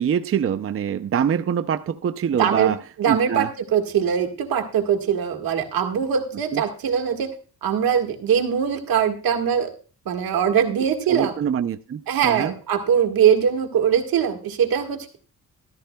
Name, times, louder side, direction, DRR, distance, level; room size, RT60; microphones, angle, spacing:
voice 1, 0.0-2.8 3.1-3.5 6.5-6.6 11.1-12.5, right 8 dB, 40° right, 0.5 m, -24 dB
voice 2, 2.4-2.7 3.0-7.3 7.6-9.7 10.0-11.3 12.1-15.2, right 8 dB, 80° right, 1.7 m, -22 dB
14.0 x 13.5 x 2.2 m
cardioid pair, 90°, 34 cm